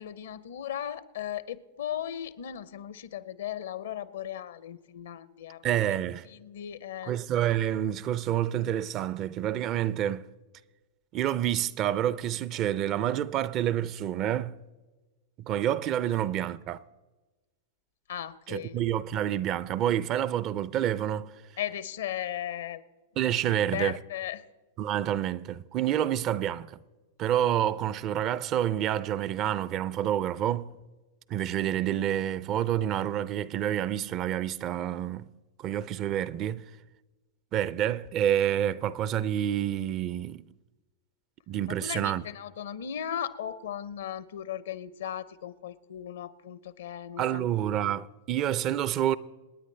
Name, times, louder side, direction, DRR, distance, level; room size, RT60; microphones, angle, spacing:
voice 1, 0.0-5.7 6.3-7.1 16.1-16.2 18.1-18.8 21.6-22.8 23.5-24.4 41.7-47.5, left 10 dB, 70° left, 0.7 m, -37 dB
voice 2, 5.6-6.3 7.0-10.3 11.1-14.6 15.4-16.8 18.5-21.3 23.2-24.0 24.8-26.8 27.2-30.7 31.3-35.3 35.6-36.6 37.5-40.4 41.5-42.2 47.2-49.2, right 11 dB, 40° right, 0.5 m, -28 dB
27.5 x 9.5 x 3.3 m
hypercardioid pair, 100°, 0 cm